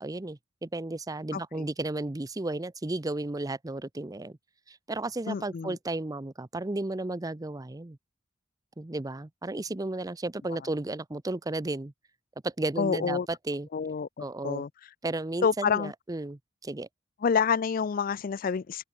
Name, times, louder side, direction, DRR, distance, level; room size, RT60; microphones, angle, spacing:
voice 1, 0.0-4.4 4.7-8.0 8.8-11.9 12.4-13.2 13.4-13.7 14.2-14.6 15.0-16.9, right 2 dB, 20° right, 0.6 m, -33 dB
voice 2, 1.3-1.7 5.3-5.8 12.8-13.3 13.7-14.7 15.4-15.9 17.2-18.8, left 6 dB, 45° left, 0.4 m, -28 dB
head